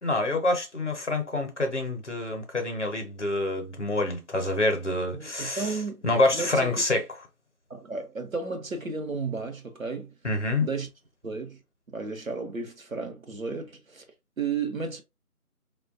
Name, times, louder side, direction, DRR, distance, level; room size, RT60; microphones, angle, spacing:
voice 1, 0.0-5.7 6.0-7.0 10.2-10.7, left 2 dB, 50° left, 0.7 m, -26 dB
voice 2, 5.1-6.7 7.7-10.1 10.6-10.9 11.2-11.6 11.9-14.0 14.4-15.0, right 4 dB, 60° right, 0.8 m, -33 dB
3.1 x 2.2 x 2.4 m
figure-of-eight pair, 165°, 45 cm